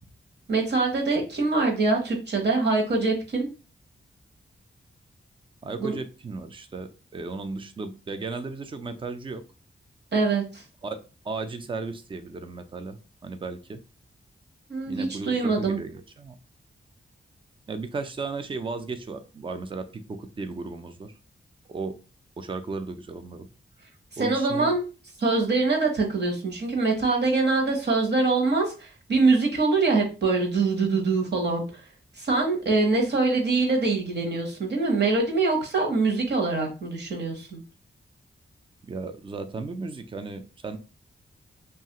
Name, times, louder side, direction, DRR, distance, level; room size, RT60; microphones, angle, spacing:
voice 1, 0.5-3.5 5.8-5.9 10.1-10.6 14.7-15.8 24.2-24.8 25.2-31.7 32.2-37.6, right 3 dB, 55° right, 1 dB, 0.9 m, -24 dB
voice 2, 5.6-9.4 10.8-11.0 11.2-13.8 14.9-16.4 17.7-21.1 21.7-22.0 22.4-23.5 24.2-24.7 38.8-40.8, right 3 dB, 25° right, 8 dB, 0.3 m, -35 dB
2.7 x 2.4 x 2.8 m, 0.33 s
wide cardioid pair, 110°, 21 cm